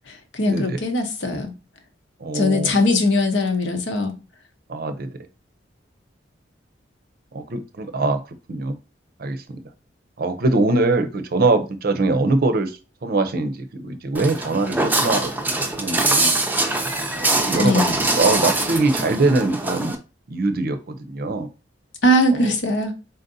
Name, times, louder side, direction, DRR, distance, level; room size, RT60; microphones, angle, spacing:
voice 1, 0.1-1.5 2.3-4.1 17.6-17.9 22.0-22.9, left 1 dB, 70° left, 1.0 m, -20 dB
voice 2, 2.2-2.8 4.7-5.1 7.3-8.2 8.5-8.8 9.2-9.6 10.2-15.3 15.8-16.3 17.1-20.0 20.3-21.5 22.3-22.4, right 3 dB, 55° right, 0.6 m, -22 dB
Walk footsteps, 14.1-19.9, right 2 dB, 10° right, 0.5 m, -23 dB
4.1 x 3.9 x 2.6 m
head